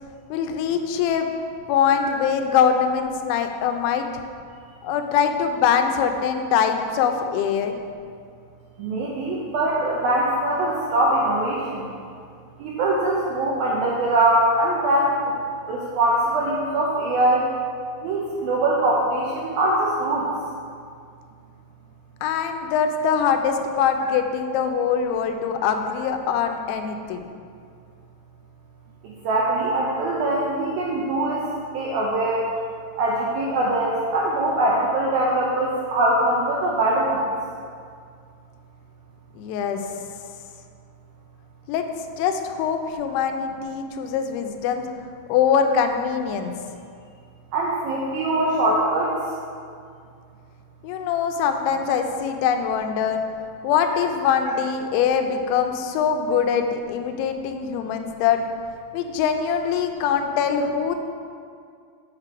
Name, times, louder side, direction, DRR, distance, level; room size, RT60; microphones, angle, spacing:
voice 1, 0.3-1.3 1.7-4.1 4.8-7.8 22.2-27.3 39.4-39.8 41.7-41.9 42.2-44.9 45.3-46.5 50.8-53.2 53.6-58.4 58.9-61.0, left 7 dB, 85° left, 6 dB, 3.0 m, -23 dB
voice 2, 8.8-11.8 12.6-15.2 15.7-17.5 18.0-20.3 29.0-31.5 31.7-32.5 33.0-37.2 47.5-49.1, right 1 dB, 85° right, -4 dB, 2.1 m, -22 dB
7.4 x 6.7 x 4.8 m, 2.2 s
omnidirectional pair, 5.2 m